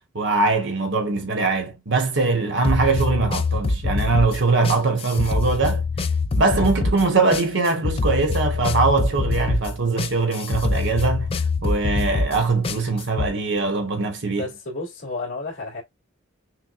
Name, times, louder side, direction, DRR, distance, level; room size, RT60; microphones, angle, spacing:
voice 1, 0.1-5.8 6.4-11.3 11.6-14.5, right 3 dB, 60° right, 1.1 m, -22 dB
sound 1, 2.6-13.3, left 3 dB, 25° left, 0.3 m, -24 dB
voice 2, 14.3-15.8, left 3 dB, 70° left, 2.1 m, -31 dB
6.0 x 2.1 x 2.4 m
head